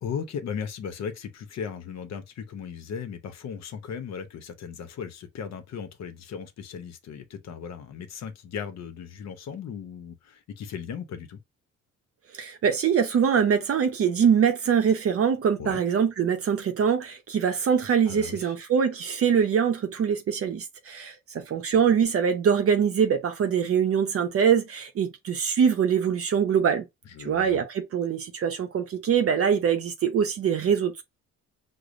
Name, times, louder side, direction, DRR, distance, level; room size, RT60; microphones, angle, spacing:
voice 1, 0.0-11.4 15.6-15.8 18.1-18.5 27.1-27.6, left 7 dB, 60° left, 0.7 m, -37 dB
voice 2, 12.3-26.9 27.2-31.0, right 7 dB, 50° right, 0.6 m, -23 dB
4.7 x 2.0 x 2.5 m
cardioid pair, 90°, 30 cm